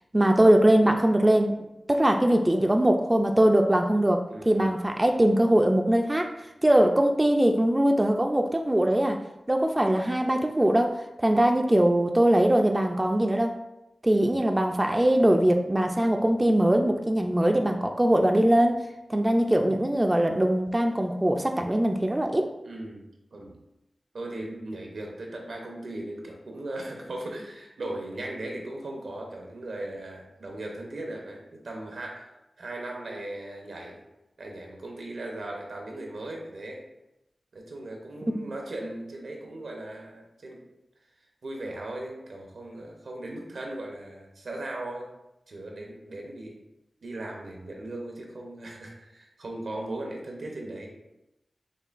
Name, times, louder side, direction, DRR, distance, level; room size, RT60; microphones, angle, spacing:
voice 1, 0.1-1.6 1.9-6.3 6.6-9.2 9.5-13.5 14.0-18.8 19.1-22.5 38.3-38.5, right 1 dB, 20° right, 4 dB, 0.3 m, -22 dB
voice 2, 4.3-4.7 14.1-14.4 22.6-23.6 24.1-32.3 32.6-34.0 34.4-36.8 37.5-40.6 41.4-45.1 45.5-46.6 47.0-51.0, right 1 dB, 85° right, 1 dB, 0.7 m, -38 dB
6.5 x 2.2 x 2.5 m, 0.91 s
wide cardioid pair, 65°, 0 cm